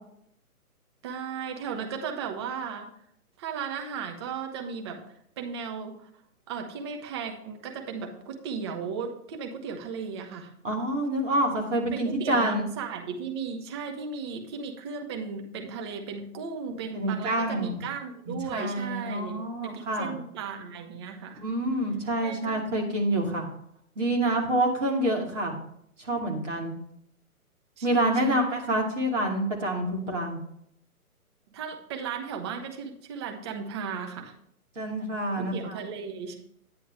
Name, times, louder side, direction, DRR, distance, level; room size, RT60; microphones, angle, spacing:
voice 1, 1.0-2.9 3.4-5.0 5.4-6.1 6.5-10.5 11.9-21.4 22.2-22.7 27.8-28.5 31.5-34.3 35.3-36.4, right 6 dB, 20° right, 4 dB, 0.8 m, -36 dB
voice 2, 10.6-12.6 16.9-17.8 18.3-20.1 21.4-23.5 24.0-25.6 26.0-26.7 27.8-30.4 34.8-35.8, right 1 dB, 55° right, 0 dB, 2.8 m, -27 dB
10.0 x 9.5 x 3.4 m, 0.72 s
figure-of-eight pair, 130°, 44 cm